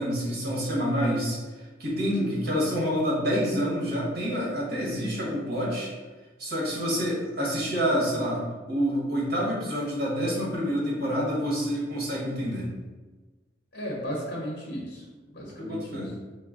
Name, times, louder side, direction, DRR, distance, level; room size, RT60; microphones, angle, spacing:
voice 1, 0.0-1.4 1.8-5.9 6.4-12.7 15.6-16.1, equal, 60° right, -4 dB, 1.2 m, -27 dB
voice 2, 13.7-15.1 15.3-16.1, equal, 70° left, -4 dB, 0.8 m, -35 dB
4.8 x 2.1 x 3.6 m, 1.3 s
head